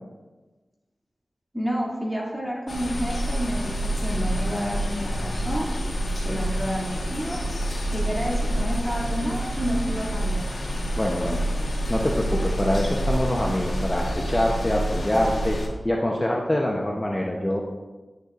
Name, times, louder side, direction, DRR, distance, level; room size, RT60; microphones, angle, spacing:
voice 1, 1.5-5.7 6.2-7.4 7.9-10.4, equal, 10° right, -4 dB, 2.4 m, -30 dB
sound 1, 2.7-15.7, equal, 70° left, 1.3 m, -27 dB
voice 2, 11.0-11.4 11.9-15.6 15.8-17.6, left 1 dB, 25° left, -1 dB, 0.8 m, -24 dB
9.8 x 6.8 x 2.5 m, 1.2 s
cardioid pair, 55°, 0 cm